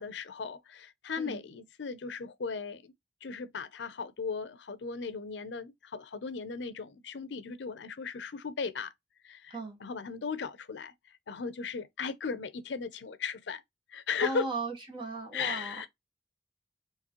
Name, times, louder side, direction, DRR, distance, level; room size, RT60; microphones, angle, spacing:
voice 1, 0.0-2.9 3.2-8.9 9.2-10.9 11.3-13.6 13.9-14.5 15.3-15.9, left 5 dB, 80° left, 0.6 m, -37 dB
voice 2, 14.2-15.7, right 3 dB, 25° right, 1.3 m, -36 dB
4.7 x 3.0 x 2.9 m
head